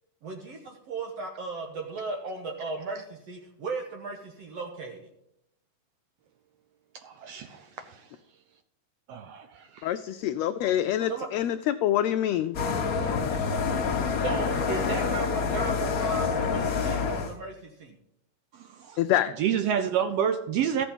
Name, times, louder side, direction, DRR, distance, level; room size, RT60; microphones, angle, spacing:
voice 1, 0.2-5.0 11.1-11.3 14.2-18.0, right 3 dB, 60° right, 1 dB, 2.2 m, -36 dB
voice 2, 7.0-8.0 9.1-9.9 13.0-13.1 14.8-14.9 18.5-19.0 19.4-20.9, right 8 dB, 75° right, 9 dB, 1.4 m, -29 dB
voice 3, 9.8-12.6 13.1-13.2 19.0-19.3, left 12 dB, 80° left, 9 dB, 1.5 m, -26 dB
sound 1, 12.5-17.3, left 5 dB, 60° left, 0.9 m, -27 dB
14.5 x 6.9 x 5.3 m, 0.80 s
omnidirectional pair, 3.5 m